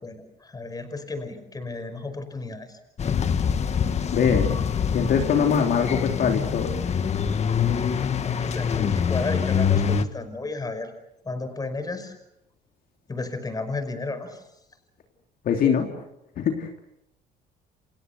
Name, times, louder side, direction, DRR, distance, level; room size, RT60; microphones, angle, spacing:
voice 1, 0.0-2.8 8.2-10.9 11.2-12.1 13.1-14.4, left 3 dB, 20° left, 10 dB, 5.5 m, -33 dB
sound 1, 3.0-10.0, left 7 dB, 40° left, 1.7 m, -25 dB
voice 2, 4.1-4.5 4.9-6.8 15.4-15.9 16.4-16.8, left 7 dB, 60° left, 3 dB, 3.3 m, -23 dB
29.5 x 26.5 x 6.8 m, 0.82 s
cardioid pair, 110°, 17 cm